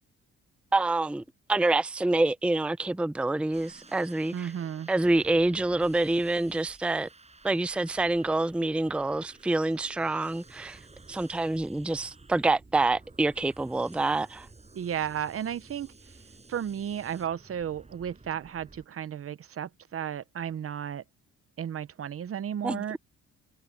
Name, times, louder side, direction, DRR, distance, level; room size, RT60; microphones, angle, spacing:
voice 1, 0.7-1.2 1.5-4.5 4.9-7.1 7.4-10.8 11.1-14.5 22.6-23.0, right 2 dB, 5° right, 0.6 m, -27 dB
sound 1, 3.5-18.8, right 3 dB, 20° right, 7.5 m, -53 dB
voice 2, 4.3-4.9 14.7-16.2 16.5-21.0 21.6-23.0, right 9 dB, 50° right, 0.9 m, -34 dB
cardioid pair, 90°, 30 cm